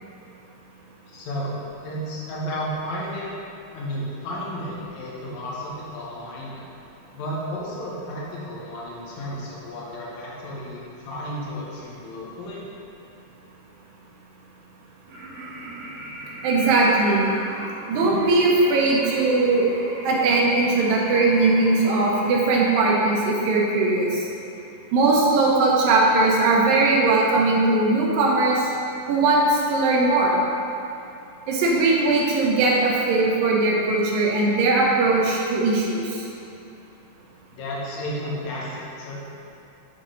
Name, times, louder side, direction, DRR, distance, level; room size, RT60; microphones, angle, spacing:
voice 1, 1.1-3.3 3.7-6.7 7.1-12.6 37.5-39.2, equal, 65° left, -5 dB, 2.0 m, -33 dB
sound 1, 15.0-23.4, right 1 dB, 50° right, 1.5 m, -37 dB
voice 2, 16.4-17.3 17.9-19.7 20.0-24.3 24.9-28.7 29.1-30.4 31.5-36.3, right 2 dB, 75° right, -3 dB, 2.2 m, -20 dB
8.9 x 3.9 x 3.8 m, 2.8 s
omnidirectional pair, 4.5 m